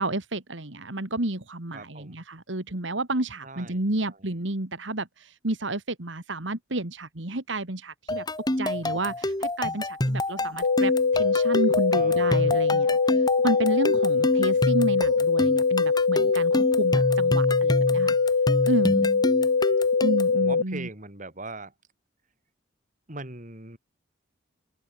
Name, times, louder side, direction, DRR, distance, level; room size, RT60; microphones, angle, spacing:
voice 1, 0.0-8.2 8.6-12.9 13.4-18.2 18.7-19.1 20.0-20.9, right 2 dB, 70° right, 2.3 m, -30 dB
voice 2, 1.7-2.2 3.4-4.4 8.7-9.2 11.9-12.6 14.1-14.6 19.3-19.5 20.3-21.7 23.1-23.8, right 2 dB, 40° right, 4.4 m, -42 dB
sound 1, 8.1-20.4, left 1 dB, 20° left, 2.1 m, -28 dB
sound 2, 10.6-20.6, left 4 dB, 90° left, 0.7 m, -22 dB
head